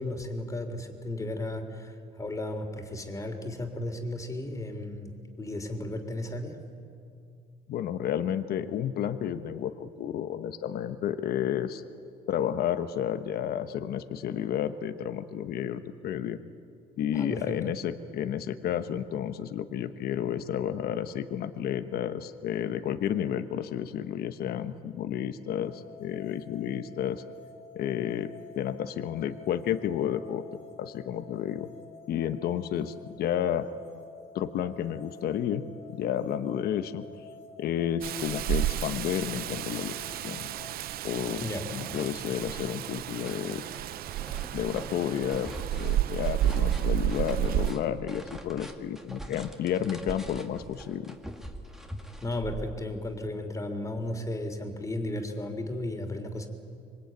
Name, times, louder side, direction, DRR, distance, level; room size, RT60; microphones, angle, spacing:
voice 1, 0.0-6.6 17.1-17.6 41.4-41.7 52.2-56.5, left 1 dB, 20° left, 5 dB, 3.4 m, -34 dB
voice 2, 7.7-11.8 12.3-16.4 17.0-27.2 27.7-30.4 30.8-31.7 32.1-33.7 34.3-35.6 36.0-37.0 37.6-39.9 40.2-40.5 41.0-41.4 41.7-43.6 44.5-45.5 45.8-51.2, left 9 dB, 65° left, 9 dB, 1.1 m, -31 dB
sound 1, 25.6-40.8, left 4 dB, 35° left, 2.2 m, -51 dB
Rain, 38.0-47.7, right 13 dB, 65° right, 0.6 m, -31 dB
sound 2, 40.0-40.1 40.5-41.2 41.5-53.2, equal, ahead, 2.2 m, -44 dB
26.0 x 23.5 x 9.3 m, 2.5 s
cardioid pair, 110°, 17 cm